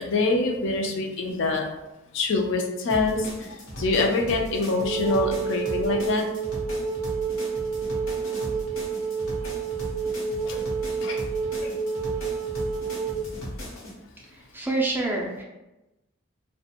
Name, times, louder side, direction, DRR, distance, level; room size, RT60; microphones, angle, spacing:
voice 1, 0.0-1.6 2.1-6.2 10.4-10.6 11.0-11.2 11.6-11.7, left 3 dB, 60° left, 2 dB, 0.4 m, -25 dB
sound 1, 2.9-13.9, equal, 80° left, 0.8 m, -37 dB
Wind instrument woodwind instrument, 4.8-13.3, right 6 dB, 90° right, 0.3 m, -29 dB
voice 2, 14.3-15.4, right 2 dB, 10° right, -3 dB, 0.3 m, -27 dB
2.4 x 2.1 x 2.8 m, 0.98 s
head